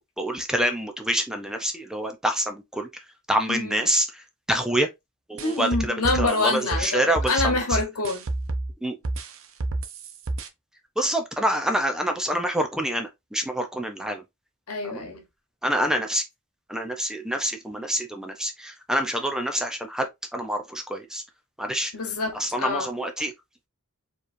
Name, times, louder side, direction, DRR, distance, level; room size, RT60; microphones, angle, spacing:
voice 1, 0.2-2.9 3.3-4.1 4.5-4.9 5.3-7.4 8.8-8.9 11.0-14.2 14.8-15.0 15.6-16.2 16.7-21.2 21.6-21.9 22.4-23.3, right 1 dB, 5° right, 0.6 m, -26 dB
voice 2, 3.5-3.9 5.4-8.3 14.7-15.2 21.9-22.9, left 3 dB, 85° left, 1.2 m, -26 dB
sound 1, 5.4-8.7 9.0-10.5, right 2 dB, 65° right, 0.7 m, -29 dB
4.6 x 3.1 x 2.6 m
head